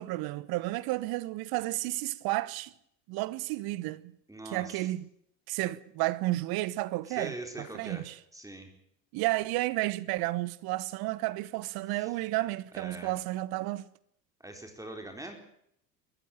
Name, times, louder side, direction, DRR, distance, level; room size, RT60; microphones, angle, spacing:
voice 1, 0.0-2.7 3.1-4.1 4.4-5.1 5.5-8.2 9.1-13.8, right 18 dB, 50° right, 1.1 m, -32 dB
voice 2, 4.3-4.8 7.1-8.0 8.3-8.7 11.9-12.1 12.7-13.1 14.4-15.4, right 1 dB, 5° right, 4.2 m, -42 dB
21.5 x 14.0 x 9.0 m
hypercardioid pair, 75°, 49 cm